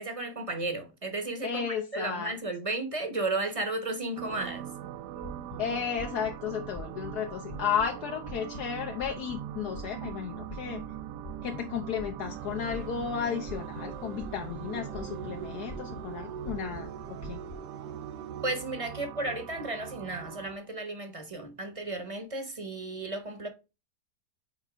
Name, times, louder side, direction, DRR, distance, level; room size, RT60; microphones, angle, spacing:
voice 1, 0.0-4.7 18.4-23.5, right 2 dB, 30° right, 0.7 m, -34 dB
voice 2, 1.4-2.3 5.6-10.8 11.4-17.4, left 7 dB, 75° left, 1.2 m, -33 dB
sound 1, 4.2-20.6, right 10 dB, 80° right, 1.2 m, -41 dB
sound 2, 5.1-17.6, left 1 dB, 55° left, 0.4 m, -46 dB
sound 3, 12.2-18.5, right 8 dB, 65° right, 0.9 m, -49 dB
5.2 x 4.4 x 4.8 m
omnidirectional pair, 1.8 m